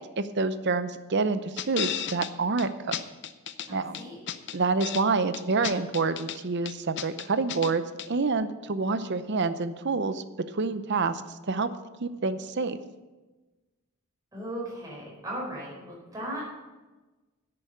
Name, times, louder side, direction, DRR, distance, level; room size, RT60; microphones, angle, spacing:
voice 1, 0.0-2.9 3.7-4.0 4.5-10.2 10.5-11.2 11.5-11.7 12.0-12.8, right 4 dB, 50° right, 12 dB, 0.7 m, -27 dB
sound 1, 1.6-2.3 2.6-2.7 2.9-3.7 3.9-5.0 5.3-6.4 6.7-7.7 8.0-8.1, left 9 dB, 55° left, 0.6 m, -33 dB
voice 2, 3.7-4.2 14.3-16.5, right 1 dB, 15° right, -4 dB, 4.8 m, -37 dB
11.0 x 8.7 x 6.7 m, 1.2 s
head